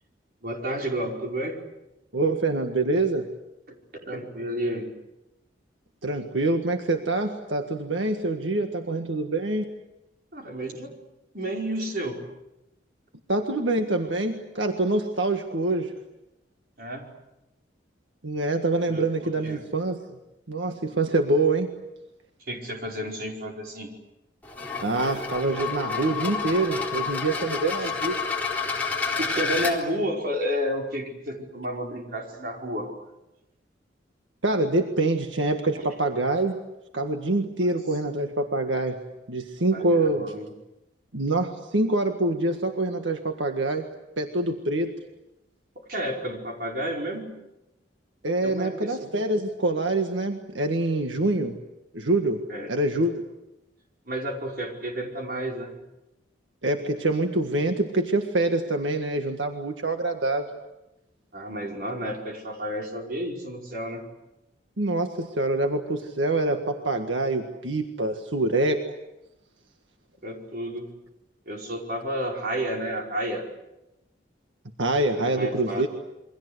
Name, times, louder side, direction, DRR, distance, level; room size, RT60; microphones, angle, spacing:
voice 1, 0.4-1.6 3.7-3.8 4.1-4.9 10.3-11.0 11.3-12.2 16.8-17.1 18.9-19.6 22.5-23.9 27.8-27.9 29.2-32.9 39.7-40.5 45.9-47.3 48.4-49.0 52.5-52.7 54.1-55.7 61.3-64.0 70.2-70.9 71.5-73.5 75.1-75.9, equal, 50° right, 1 dB, 5.2 m, -31 dB
voice 2, 2.1-3.3 6.0-9.6 13.3-15.9 18.2-20.0 20.5-21.7 24.8-28.3 34.4-36.6 36.9-39.0 39.3-40.3 41.1-44.9 48.2-51.6 51.9-52.4 52.7-53.2 56.6-60.5 64.8-68.8 74.8-75.9, right 2 dB, 85° right, 5 dB, 1.7 m, -25 dB
sound 1, 24.4-29.7, left 4 dB, 10° left, 4.0 m, -29 dB
28.0 x 24.0 x 8.1 m, 0.94 s
head